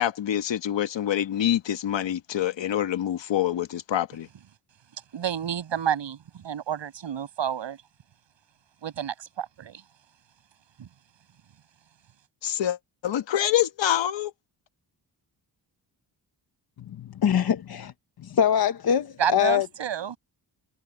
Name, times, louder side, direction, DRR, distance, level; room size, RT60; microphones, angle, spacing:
voice 1, 0.0-4.3 12.4-12.8 13.0-14.3, left 11 dB, 85° left, 1.4 m, -26 dB
voice 2, 5.1-7.8 8.8-9.8 10.8-10.9 19.2-20.2, right 9 dB, 85° right, 6.6 m, -30 dB
voice 3, 16.9-17.9 18.2-19.7, left 9 dB, 55° left, 1.0 m, -23 dB
wide cardioid pair, 145°, 43 cm